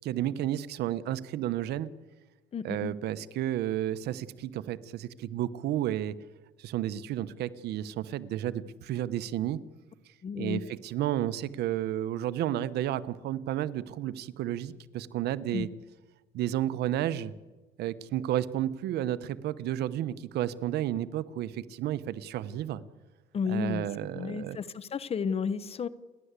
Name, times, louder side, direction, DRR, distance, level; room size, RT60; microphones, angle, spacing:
voice 1, 0.0-1.9 2.6-6.1 6.6-9.6 10.3-15.7 16.3-17.3 17.8-22.8 23.5-24.6, right 12 dB, 75° right, 15 dB, 1.0 m, -32 dB
voice 2, 2.5-2.9 10.2-10.6 15.5-15.7 23.3-23.8 24.1-25.9, left 6 dB, 35° left, 17 dB, 1.0 m, -32 dB
29.5 x 11.5 x 8.2 m, 1.2 s
cardioid pair, 110°, 17 cm